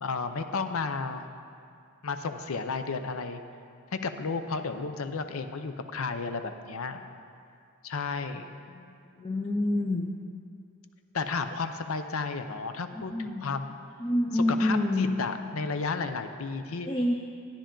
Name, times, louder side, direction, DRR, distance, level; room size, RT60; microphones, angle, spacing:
voice 1, 0.0-1.2 2.0-3.4 3.9-7.0 7.8-8.4 11.1-13.8 14.3-16.9, left 4 dB, 75° left, 8 dB, 0.6 m, -33 dB
voice 2, 9.2-10.1 12.9-13.4 14.0-15.1 16.9-17.1, left 1 dB, 25° left, 1 dB, 0.5 m, -27 dB
12.5 x 10.0 x 3.8 m, 2.4 s
head